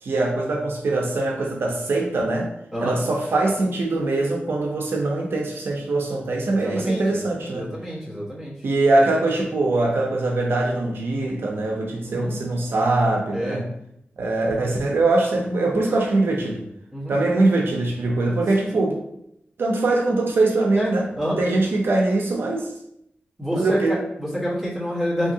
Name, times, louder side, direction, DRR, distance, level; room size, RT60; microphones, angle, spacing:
voice 1, 0.0-2.5 2.8-7.7 8.6-13.7 14.2-16.6 17.1-19.0 19.6-21.1 21.4-22.7 23.5-24.0, right 2 dB, 75° right, 0 dB, 0.5 m, -22 dB
voice 2, 6.5-7.2 7.5-8.5 12.0-12.3 13.3-13.6 16.9-17.2 18.5-18.8 20.7-20.9 21.2-21.4 23.4-23.8 24.2-25.3, equal, ahead, -8 dB, 1.1 m, -28 dB
3.5 x 2.7 x 2.7 m, 0.77 s
wide cardioid pair, 170°, 4 cm